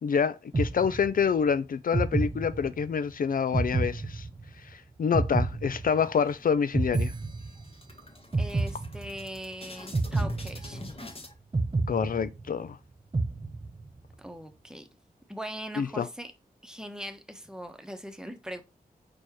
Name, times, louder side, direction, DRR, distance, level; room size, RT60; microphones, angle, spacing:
voice 1, 0.0-4.3 4.7-7.1 11.9-12.8 15.8-16.1, left 6 dB, 65° left, 0.5 m, -27 dB
Eerie Slow Motion Effect, 0.5-1.4 1.9-3.0 3.5-4.7 5.1-6.3 6.7-7.9 8.3-9.4 9.9-11.1 11.5-12.7 13.1-14.0, right 3 dB, 30° right, 0.6 m, -30 dB
sound 1, 6.0-6.8 7.1-7.3 7.6-11.3, left 1 dB, 40° left, 1.6 m, -44 dB
voice 2, 8.4-10.8 14.2-14.9 15.3-16.3 16.6-18.6, equal, 5° right, 1.1 m, -40 dB
4.7 x 4.3 x 4.7 m
cardioid pair, 70°, 16 cm